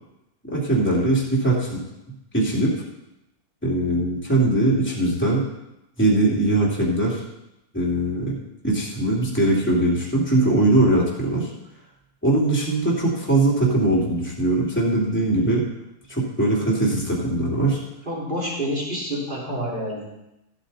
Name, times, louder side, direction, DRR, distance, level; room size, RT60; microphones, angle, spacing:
voice 1, 0.4-1.8 2.3-2.7 3.6-5.4 6.0-7.2 7.7-8.4 8.6-11.5 12.2-15.6 16.1-17.8, right 2 dB, 5° left, -6 dB, 2.6 m, -21 dB
voice 2, 18.0-20.1, equal, 30° right, -5 dB, 3.3 m, -28 dB
14.0 x 8.2 x 4.2 m, 0.91 s
omnidirectional pair, 1.6 m